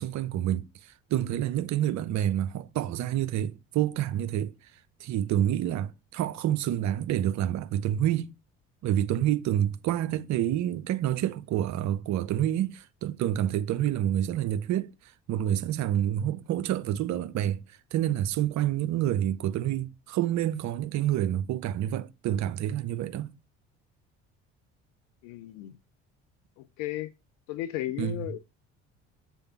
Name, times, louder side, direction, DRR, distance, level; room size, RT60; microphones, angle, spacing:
voice 1, 0.0-4.5 5.0-8.3 8.8-14.9 15.3-17.6 17.9-23.3 28.0-28.3, right 11 dB, 50° right, 0.7 m, -28 dB
voice 2, 25.2-25.7 26.6-27.1 27.5-28.4, left 15 dB, 65° left, 0.5 m, -34 dB
7.8 x 3.5 x 5.5 m
hypercardioid pair, 60°, 36 cm